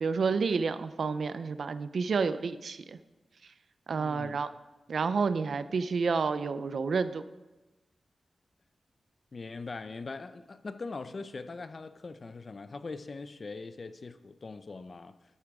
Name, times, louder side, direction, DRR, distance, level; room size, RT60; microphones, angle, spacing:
voice 1, 0.0-3.0 3.9-4.5 4.9-7.2, right 5 dB, 65° right, 0.5 m, -29 dB
voice 2, 3.9-4.4 9.3-15.2, left 3 dB, 40° left, 0.5 m, -41 dB
12.5 x 8.7 x 3.6 m
wide cardioid pair, 140°, 0 cm